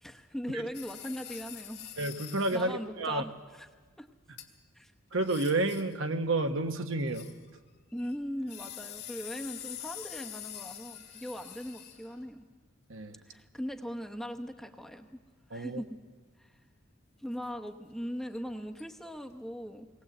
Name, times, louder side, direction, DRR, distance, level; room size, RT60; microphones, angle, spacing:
voice 1, 0.0-1.8 2.5-3.7 4.0-4.1 4.7-4.9 7.9-12.5 13.2-15.2 15.5-16.0 16.4-16.6 17.2-19.9, equal, ahead, 4 dB, 0.9 m, -39 dB
sound 1, 0.7-2.7 4.4-4.5 5.2-6.0 6.9-7.6 7.9-12.3 18.3-18.4 18.8-18.9, left 11 dB, 50° left, 1.8 m, -45 dB
voice 2, 2.0-3.2 5.1-7.3 12.9-13.2 15.5-15.8, right 2 dB, 70° right, 7 dB, 1.2 m, -30 dB
20.0 x 17.5 x 7.9 m, 1.4 s
head